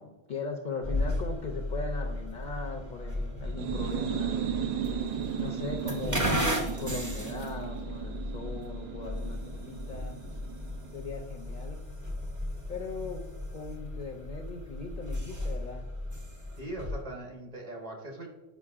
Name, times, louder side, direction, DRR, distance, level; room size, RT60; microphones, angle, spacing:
voice 1, 0.0-5.1 5.4-10.2 10.6-11.8 12.7-13.3 13.5-15.9, left 4 dB, 55° left, 2 dB, 0.6 m, -39 dB
sound 1, 0.8-17.0, left 1 dB, 20° right, 0.7 m, -35 dB
sound 2, 3.4-11.0, right 8 dB, 55° right, 0.4 m, -35 dB
voice 2, 16.6-18.3, right 1 dB, 40° right, 0 dB, 1.2 m, -40 dB
8.1 x 5.1 x 2.4 m, 1.1 s
omnidirectional pair, 1.1 m